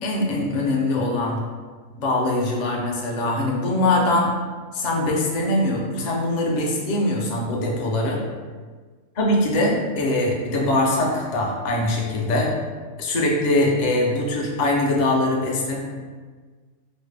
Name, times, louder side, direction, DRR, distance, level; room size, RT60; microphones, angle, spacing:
voice 1, 0.0-1.4 2.0-4.3 4.7-8.2 9.2-12.5 13.0-15.8, left 1 dB, 50° left, -2 dB, 0.5 m, -22 dB
4.0 x 2.1 x 3.2 m, 1.4 s
omnidirectional pair, 1.3 m